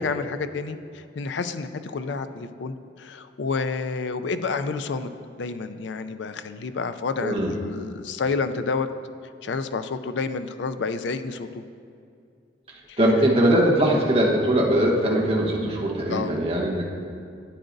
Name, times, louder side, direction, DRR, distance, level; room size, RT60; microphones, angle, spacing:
voice 1, 0.0-5.1 5.4-8.9 9.4-11.6 12.9-13.0 16.1-16.4, left 4 dB, 70° left, 10 dB, 0.4 m, -29 dB
voice 2, 7.2-7.5 13.0-16.9, right 1 dB, 35° right, -3 dB, 1.2 m, -21 dB
11.5 x 9.1 x 2.6 m, 2.4 s
head